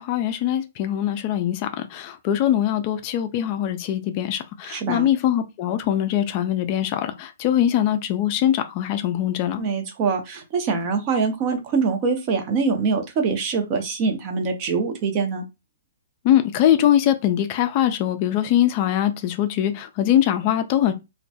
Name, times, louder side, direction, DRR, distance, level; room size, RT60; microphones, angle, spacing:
voice 1, 0.0-9.6 16.2-20.9, left 11 dB, 40° left, 0.3 m, -22 dB
voice 2, 4.7-5.1 9.6-15.4, right 5 dB, 35° right, 0.6 m, -24 dB
2.1 x 2.1 x 2.7 m
hypercardioid pair, 130°, 0 cm